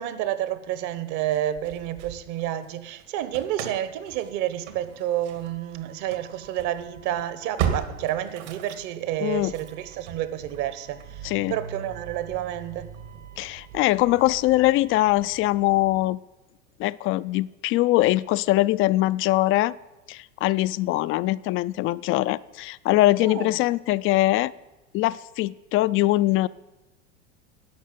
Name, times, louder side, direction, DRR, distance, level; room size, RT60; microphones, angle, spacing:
voice 1, 0.0-12.9 23.2-23.5, right 12 dB, 50° right, 1.3 m, -30 dB
Engine starting / Slam, 1.3-2.7 3.0-16.0, right 8 dB, 70° right, 2.2 m, -38 dB
voice 2, 9.2-9.5 11.2-11.6 13.4-16.2 16.8-19.8 20.1-24.5 24.9-26.5, left 17 dB, 35° left, 0.4 m, -22 dB
11.5 x 6.7 x 9.4 m
hypercardioid pair, 100°, 37 cm